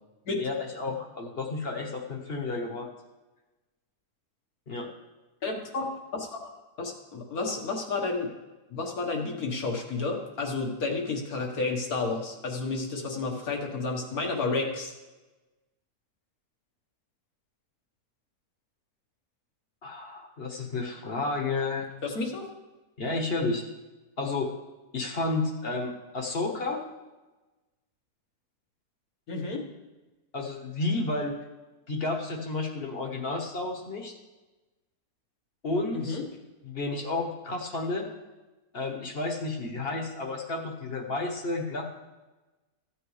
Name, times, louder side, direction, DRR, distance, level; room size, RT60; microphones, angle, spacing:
voice 1, 0.4-2.9 4.7-4.9 19.8-21.9 23.0-23.7 24.2-24.5 24.9-26.8 30.3-31.4 31.9-34.1 35.6-36.2 36.6-38.1 38.7-41.8, left 3 dB, 40° left, 2 dB, 1.4 m, -31 dB
voice 2, 5.4-6.5 6.8-8.3 8.7-14.9 22.0-22.5 29.3-29.7 35.9-36.2, left 3 dB, 70° left, 1 dB, 1.9 m, -31 dB
14.5 x 8.4 x 3.2 m, 1.1 s
omnidirectional pair, 1.6 m